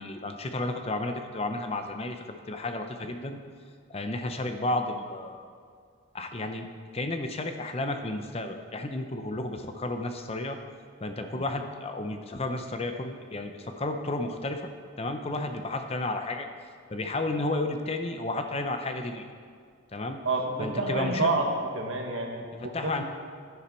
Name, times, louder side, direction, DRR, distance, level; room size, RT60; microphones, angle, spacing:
voice 1, 0.0-3.4 3.9-5.4 6.1-6.7 6.9-10.6 11.0-14.6 15.0-16.5 16.9-19.2 19.9-20.2 20.6-21.3 22.7-23.0, left 2 dB, 30° left, 6 dB, 0.6 m, -32 dB
voice 2, 20.2-23.0, right 2 dB, 70° right, 1 dB, 1.5 m, -29 dB
10.5 x 10.0 x 4.4 m, 2.1 s
head